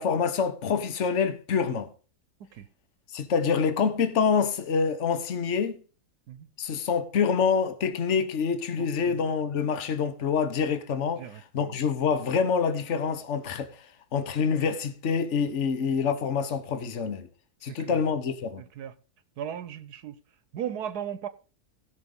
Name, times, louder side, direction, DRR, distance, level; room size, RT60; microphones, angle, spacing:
voice 1, 0.0-1.9 3.1-5.8 6.6-11.3 11.5-13.7 14.1-17.3 17.6-18.6, left 6 dB, 50° left, 1.5 m, -26 dB
voice 2, 8.8-9.2 11.2-11.7 17.7-18.0 18.8-18.9 19.4-20.2 20.5-21.3, right 9 dB, 80° right, 1.3 m, -37 dB
17.0 x 5.7 x 5.4 m
omnidirectional pair, 1.7 m